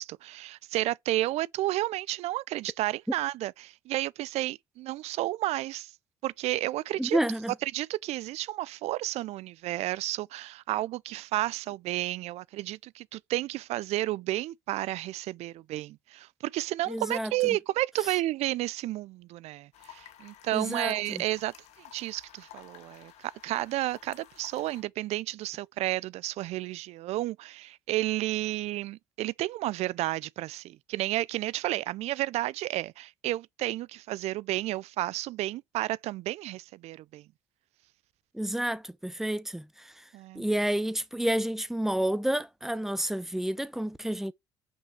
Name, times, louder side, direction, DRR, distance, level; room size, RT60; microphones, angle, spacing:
voice 1, 0.0-5.9 6.2-7.2 7.7-21.5 21.9-37.2 40.1-40.4, right 16 dB, 65° right, 0.4 m, -32 dB
voice 2, 7.0-7.6 16.9-17.6 20.5-21.2 38.3-40.0 40.3-44.3, right 1 dB, 5° right, 0.8 m, -30 dB
sound 1, 19.7-24.8, left 11 dB, 70° left, 1.5 m, -53 dB
5.7 x 5.5 x 4.9 m
supercardioid pair, 75°, 12 cm